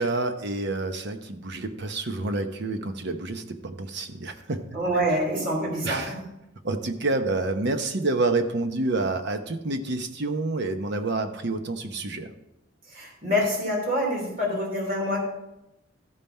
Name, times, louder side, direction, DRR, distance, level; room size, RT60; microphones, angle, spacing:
voice 1, 0.0-4.6 5.8-6.1 6.6-12.3, right 2 dB, 60° right, 7 dB, 0.9 m, -28 dB
voice 2, 4.7-6.1 12.9-15.2, equal, 45° right, -2 dB, 3.2 m, -26 dB
14.0 x 5.5 x 4.4 m, 0.90 s
head